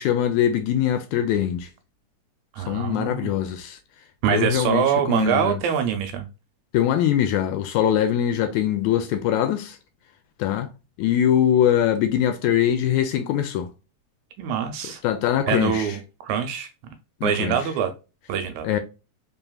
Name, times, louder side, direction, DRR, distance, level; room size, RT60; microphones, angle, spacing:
voice 1, 0.0-1.7 2.7-3.8 4.3-5.6 6.7-9.8 10.4-10.7 11.0-13.7 14.8-16.0 17.2-17.6 18.6-18.8, left 10 dB, 80° left, 1.8 m, -22 dB
voice 2, 2.6-3.3 4.2-6.3 14.4-15.0 15.5-16.7 17.2-17.9 18.3-18.7, right 8 dB, 75° right, 1.8 m, -24 dB
4.5 x 3.4 x 2.2 m
omnidirectional pair, 3.6 m